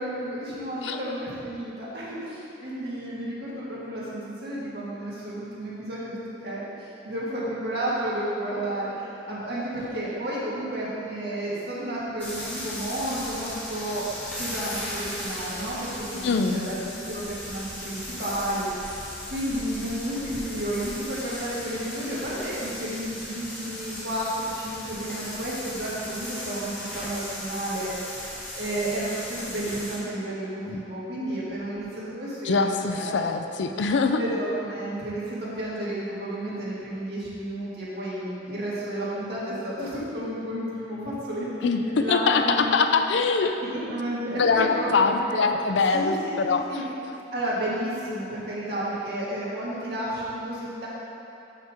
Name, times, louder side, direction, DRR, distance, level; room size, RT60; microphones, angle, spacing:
voice 1, 0.0-6.2 6.4-14.0 14.4-32.7 32.9-33.2 34.1-42.7 43.6-45.5 45.9-46.1 46.4-46.8 47.3-50.9, right 1 dB, 60° right, -8 dB, 1.8 m, -32 dB
sound 1, 12.2-30.0, left 1 dB, 10° left, 1.5 m, -37 dB
voice 2, 16.1-16.7 30.6-30.8 31.2-31.4 32.4-34.2 41.6-43.6 44.4-46.8, left 4 dB, 80° left, 6 dB, 0.5 m, -23 dB
5.7 x 5.6 x 6.5 m, 3.0 s
head